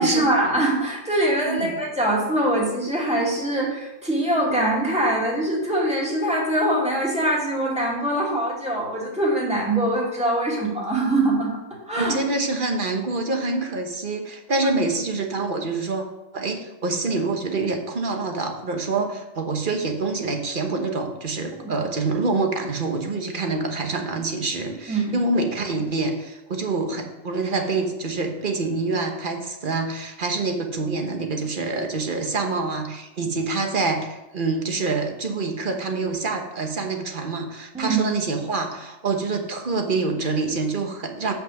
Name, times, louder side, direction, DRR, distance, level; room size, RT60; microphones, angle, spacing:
voice 1, 0.0-11.5 11.9-12.2 21.6-21.7 24.9-25.1 37.7-38.0, right 1 dB, 5° right, -4 dB, 2.3 m, -23 dB
voice 2, 12.0-16.0 16.3-41.3, right 3 dB, 45° right, 4 dB, 1.2 m, -26 dB
8.1 x 5.7 x 6.4 m, 0.98 s
omnidirectional pair, 1.3 m